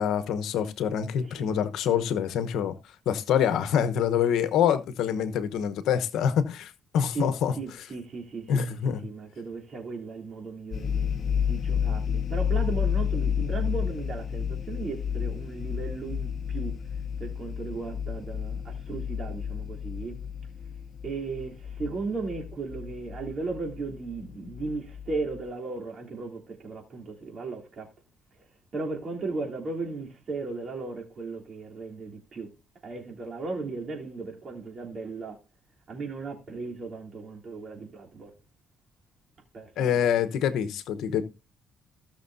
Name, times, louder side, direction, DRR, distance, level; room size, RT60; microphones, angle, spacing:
voice 1, 0.0-2.7 3.1-7.5 8.5-9.1 39.8-41.2, left 8 dB, 85° left, 1.0 m, -26 dB
voice 2, 7.1-8.8 9.0-16.7 17.2-20.1 21.0-27.9 28.7-32.5 32.8-35.4 35.9-38.3 39.5-40.0, right 3 dB, 50° right, 3.2 m, -36 dB
sound 1, 10.7-25.4, left 8 dB, 55° left, 0.9 m, -31 dB
17.5 x 6.5 x 2.7 m
cardioid pair, 90°, 0 cm